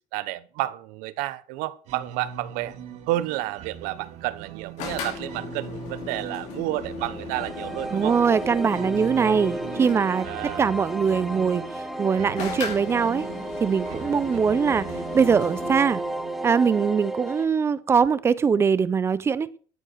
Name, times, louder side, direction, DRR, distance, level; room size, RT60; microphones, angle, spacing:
voice 1, 0.1-2.8 3.1-8.2 10.2-10.7, right 16 dB, 85° right, 1.0 m, -30 dB
sound 1, 1.8-17.3, right 8 dB, 55° right, 2.0 m, -42 dB
sound 2, 4.8-10.2 12.4-15.7, left 5 dB, 60° left, 5.5 m, -37 dB
sound 3, 7.3-17.5, right 1 dB, ahead, 0.9 m, -34 dB
voice 2, 7.9-10.3 10.6-11.6 12.0-13.2 13.6-14.9 15.1-16.0 16.4-19.5, right 6 dB, 20° right, 0.5 m, -22 dB
13.5 x 8.0 x 6.3 m
cardioid pair, 180°, 14 cm